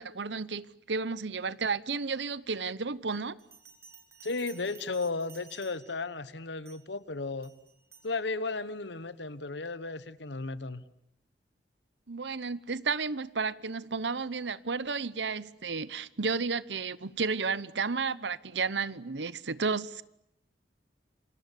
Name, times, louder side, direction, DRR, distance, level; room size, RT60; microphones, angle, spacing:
voice 1, 0.0-3.3 12.1-20.0, right 4 dB, 90° right, 1.0 m, -32 dB
Bell, 3.4-6.1 6.6-7.0 7.4-8.1, right 6 dB, 15° right, 3.3 m, -54 dB
voice 2, 4.2-7.5 8.0-10.8, left 3 dB, 90° left, 1.3 m, -34 dB
27.5 x 25.0 x 8.3 m
head